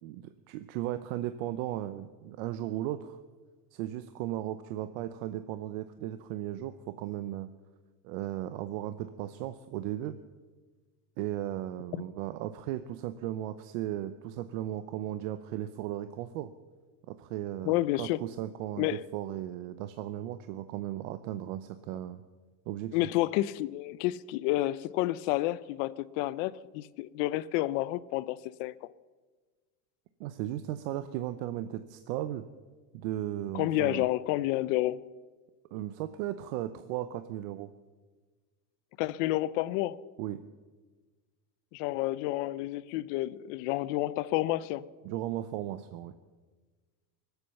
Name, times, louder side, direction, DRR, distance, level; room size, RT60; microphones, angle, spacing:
voice 1, 0.0-3.2 3.7-7.5 8.0-10.2 11.2-16.5 17.1-22.2 22.7-23.0 30.2-32.4 32.9-34.1 35.7-37.7 40.2-40.4 45.0-46.1, right 13 dB, 60° right, 0.8 m, -36 dB
voice 2, 17.6-18.2 18.8-19.0 22.9-28.7 33.5-35.0 39.0-40.0 41.7-44.8, left 16 dB, 55° left, 0.6 m, -30 dB
24.0 x 8.2 x 7.0 m
cardioid pair, 170°, 46 cm